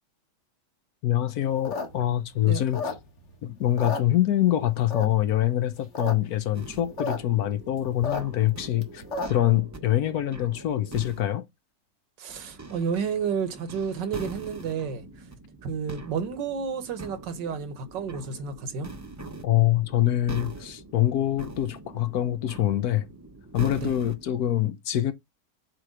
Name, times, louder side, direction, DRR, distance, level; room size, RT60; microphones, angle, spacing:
voice 1, 1.0-2.9 3.4-11.4 19.4-23.1 23.5-25.1, left 13 dB, 65° left, 1.1 m, -25 dB
sound 1, 1.5-3.3 3.6-4.5 4.9-5.3 5.7-6.1 6.4-6.5 6.6-7.2 7.5-9.5, left 3 dB, 40° left, 1.7 m, -32 dB
sound 2, 6.5-11.2 12.3-24.5, right 2 dB, 20° right, 0.4 m, -43 dB
voice 2, 12.2-15.0 15.6-18.9 23.8-23.9, right 6 dB, 85° right, 1.7 m, -31 dB
7.6 x 3.1 x 4.9 m
omnidirectional pair, 1.9 m